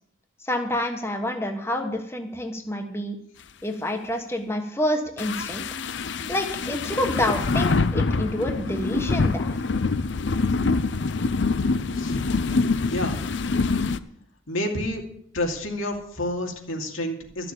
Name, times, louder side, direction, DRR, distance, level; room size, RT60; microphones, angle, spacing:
voice 1, 0.4-3.2 3.6-5.7 6.3-9.5, left 1 dB, 10° left, 3 dB, 1.2 m, -28 dB
sound 1, 5.2-14.0, left 3 dB, 60° left, 0.6 m, -25 dB
voice 2, 12.8-13.2 14.5-15.0 15.3-17.5, left 1 dB, 90° left, 1 dB, 2.6 m, -29 dB
13.0 x 6.8 x 8.8 m, 0.69 s
head